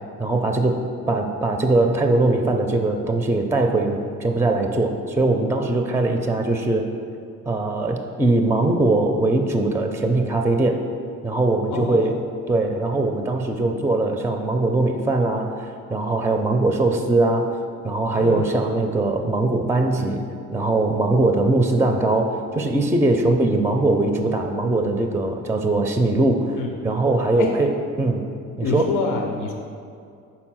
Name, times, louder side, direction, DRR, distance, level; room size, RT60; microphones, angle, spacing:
voice 1, 0.2-0.8 1.1-6.9 7.5-10.8 11.2-12.2 12.5-17.6 17.8-20.3 20.5-26.6 26.8-28.3 28.6-28.9, right 2 dB, 10° right, 5 dB, 0.4 m, -21 dB
voice 2, 11.7-12.2 18.2-18.5 26.6-26.7 27.4-27.6 28.6-29.5, left 4 dB, 90° left, 3 dB, 0.6 m, -26 dB
5.4 x 4.1 x 6.0 m, 2.4 s
cardioid pair, 90°, 30 cm